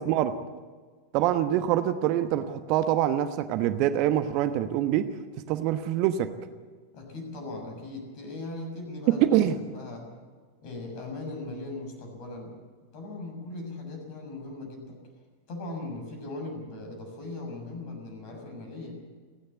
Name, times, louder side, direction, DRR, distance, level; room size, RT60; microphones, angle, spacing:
voice 1, 0.1-0.4 1.1-5.1 5.5-6.3 9.3-9.6, right 11 dB, 45° right, 10 dB, 1.1 m, -25 dB
voice 2, 6.9-9.4 9.7-10.1 10.6-12.6 12.9-15.0 15.5-19.0, left 2 dB, 45° left, 3 dB, 6.7 m, -39 dB
30.0 x 10.0 x 8.4 m, 1.5 s
figure-of-eight pair, 90°, 0 cm